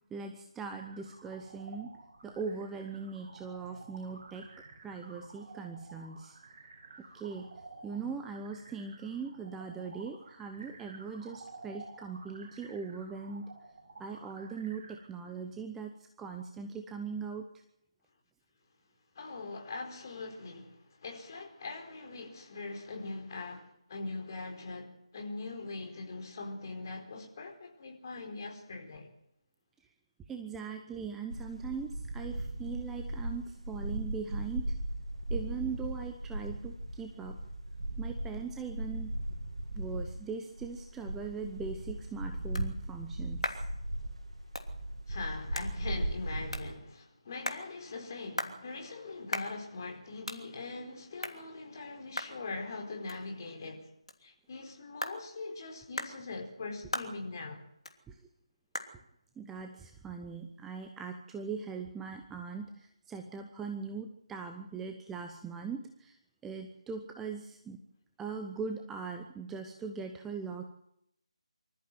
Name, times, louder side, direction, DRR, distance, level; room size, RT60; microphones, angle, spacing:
voice 1, 0.1-1.9 2.2-4.5 4.8-6.4 7.1-7.5 7.8-13.5 14.0-17.5 30.3-34.8 35.3-37.4 38.0-39.1 39.7-43.6 58.1-58.2 59.4-66.2 66.4-67.8 68.2-70.6, right 5 dB, 5° right, 0.8 m, -40 dB
sound 1, 0.7-15.1, right 3 dB, 35° right, 6.2 m, -52 dB
voice 2, 19.2-29.1 45.1-53.8 54.2-57.6, left 3 dB, 35° left, 4.4 m, -42 dB
sound 2, 31.3-40.2 40.6-46.8, right 1 dB, 75° right, 2.5 m, -37 dB
sound 3, 41.6-61.0, left 1 dB, 75° left, 3.0 m, -44 dB
25.0 x 14.0 x 7.8 m
figure-of-eight pair, 155°, 3 cm